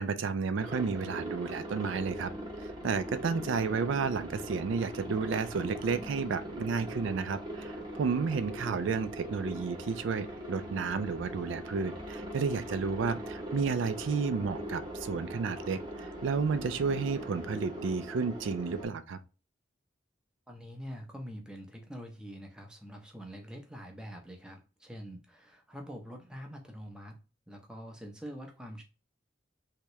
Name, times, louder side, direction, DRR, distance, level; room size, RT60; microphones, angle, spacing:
voice 1, 0.0-2.3 2.6-19.2, right 5 dB, 75° right, 0.4 m, -32 dB
Aircraft, 0.6-18.9, equal, 25° right, 0.9 m, -41 dB
voice 2, 20.5-27.2 27.5-28.8, equal, 5° right, 0.6 m, -45 dB
3.4 x 2.8 x 3.0 m
head